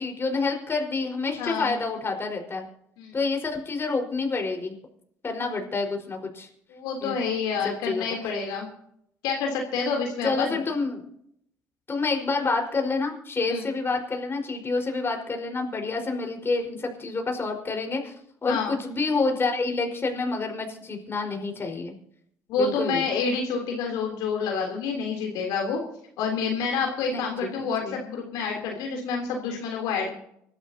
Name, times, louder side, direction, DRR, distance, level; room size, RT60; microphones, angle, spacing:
voice 1, 0.0-2.6 3.1-4.8 5.2-6.5 7.0-7.1 7.6-8.0 10.2-11.0 11.9-18.1 18.4-22.0 22.5-23.0 27.0-27.2 27.6-28.0, left 3 dB, 35° left, 2 dB, 4.7 m, -28 dB
voice 2, 1.4-1.7 3.0-3.2 6.7-8.7 9.2-10.6 13.5-13.7 18.5-18.7 22.5-25.8 26.2-30.1, left 5 dB, 80° left, 1 dB, 3.3 m, -28 dB
25.0 x 12.5 x 2.8 m, 0.71 s
supercardioid pair, 65°, 7 cm